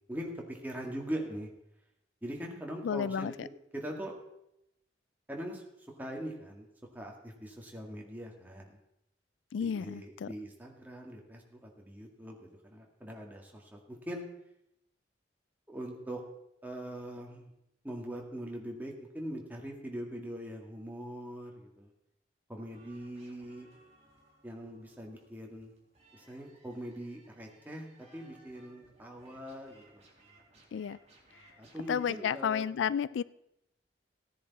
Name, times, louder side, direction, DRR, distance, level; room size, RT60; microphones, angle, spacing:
voice 1, 0.1-1.5 2.2-3.4 3.7-4.1 5.3-5.6 6.0-6.7 6.9-8.8 9.6-14.2 15.7-16.2 16.6-17.5 17.8-21.9 22.5-23.7 24.4-25.7 26.1-30.0 31.6-32.7, equal, 10° right, 0 dB, 2.0 m, -42 dB
voice 2, 2.8-3.5 9.5-10.3 30.7-31.0 31.9-33.2, left 7 dB, 80° left, 19 dB, 0.3 m, -32 dB
sound 1, 22.7-32.4, right 1 dB, 35° right, 4.1 m, -63 dB
16.0 x 10.0 x 4.2 m, 0.84 s
head